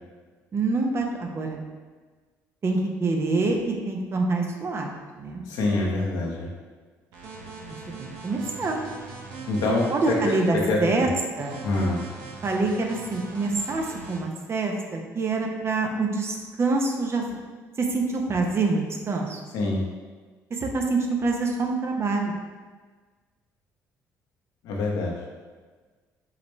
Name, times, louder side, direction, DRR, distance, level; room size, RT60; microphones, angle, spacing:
voice 1, 0.5-1.6 2.6-4.9 5.2-5.4 8.0-8.8 9.9-11.1 11.4-11.6 12.4-17.2 17.8-19.4 20.5-22.3, right 3 dB, 40° right, 2 dB, 0.8 m, -26 dB
voice 2, 5.5-6.5 9.5-10.1 10.7-11.1 11.6-12.0 19.5-19.8 24.6-25.1, left 2 dB, 80° left, -2 dB, 1.0 m, -25 dB
sound 1, 7.1-10.5 11.4-14.2, right 4 dB, 85° right, 0.8 m, -41 dB
4.9 x 3.3 x 3.1 m, 1.4 s
supercardioid pair, 75°, 7 cm